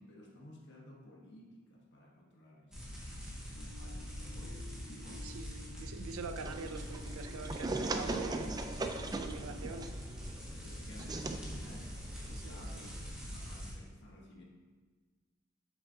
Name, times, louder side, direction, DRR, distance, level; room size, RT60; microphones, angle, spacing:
voice 1, 0.0-2.9 3.2-5.4 10.6-14.4, left 1 dB, 55° left, -1 dB, 1.3 m, -54 dB
sound 1, 2.7-13.7, equal, 5° right, 1.7 m, -44 dB
sound 2, 3.6-10.3, left 6 dB, 75° left, 1.2 m, -56 dB
voice 2, 5.1-8.5 9.1-9.9 12.4-12.9, right 5 dB, 75° right, 8 dB, 0.5 m, -45 dB
sound 3, 6.4-13.1, right 2 dB, 20° right, 0.4 m, -40 dB
8.0 x 6.9 x 2.8 m, 1.4 s
head